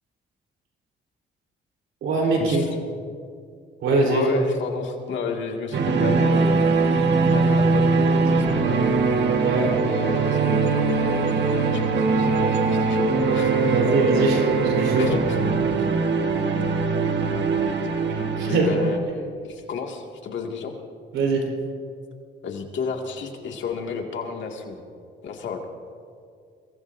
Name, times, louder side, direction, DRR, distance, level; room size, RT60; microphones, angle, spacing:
voice 1, 2.0-2.6 3.8-4.3 9.4-9.7 13.7-15.1 18.4-18.7 21.1-21.4, right 3 dB, 85° right, -1 dB, 3.9 m, -22 dB
voice 2, 4.0-6.6 7.3-8.8 9.8-13.8 14.1-14.3 15.0-15.4 18.4-20.7 22.4-24.8 25.2-25.6, left 5 dB, 70° left, 2 dB, 2.1 m, -32 dB
sound 1, 5.7-19.0, right 4 dB, 60° right, 1.6 m, -21 dB
23.0 x 19.0 x 2.7 m, 2.3 s
cardioid pair, 90°, 20 cm